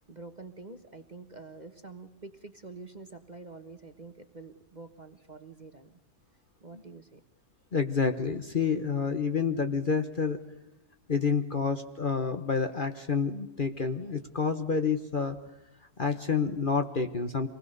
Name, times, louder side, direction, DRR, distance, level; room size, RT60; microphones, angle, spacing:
voice 1, 0.0-5.9 6.6-7.2, right 3 dB, 30° right, 8 dB, 1.3 m, -47 dB
voice 2, 7.7-10.4 11.1-15.4 16.0-17.5, left 5 dB, 35° left, 7 dB, 1.2 m, -28 dB
26.0 x 20.0 x 6.7 m, 0.97 s
omnidirectional pair, 1.7 m